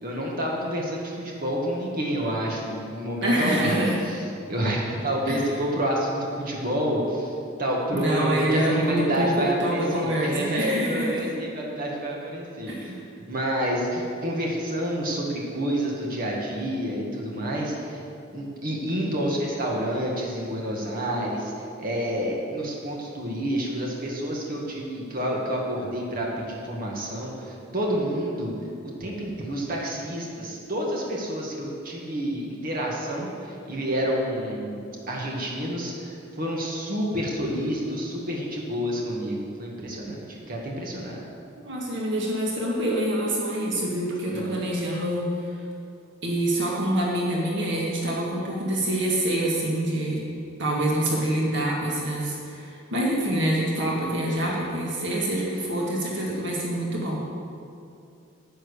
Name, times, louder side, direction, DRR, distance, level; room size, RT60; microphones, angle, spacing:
voice 1, 0.0-3.8 4.1-4.2 4.5-13.0 13.3-18.0 18.3-28.5 28.8-41.2 44.3-44.6, equal, 45° right, -2 dB, 1.9 m, -29 dB
voice 2, 3.2-4.1 5.3-5.4 7.9-11.3 12.7-13.0 41.6-45.5 46.2-50.2 50.6-57.3, right 1 dB, 65° right, -3 dB, 1.8 m, -26 dB
10.0 x 9.1 x 6.5 m, 2.5 s
head